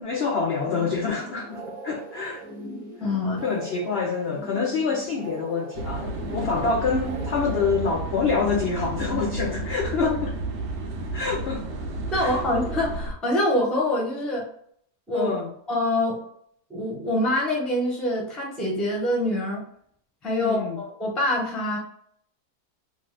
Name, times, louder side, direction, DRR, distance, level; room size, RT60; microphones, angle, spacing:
voice 1, 0.0-2.4 3.4-10.3 11.1-11.6 12.1-12.4 15.1-15.5 20.4-20.8, left 5 dB, 70° left, 0 dB, 0.6 m, -26 dB
sound 1, 0.5-7.9, right 1 dB, 25° right, 0.8 m, -40 dB
voice 2, 3.0-3.4 10.0-10.1 12.1-14.5 15.1-15.3 15.7-16.2 16.7-19.6 20.2-21.8, left 1 dB, ahead, -2 dB, 0.4 m, -25 dB
sound 2, 5.7-13.1, right 2 dB, 70° right, 0.7 m, -32 dB
3.0 x 2.1 x 3.1 m, 0.65 s
omnidirectional pair, 1.6 m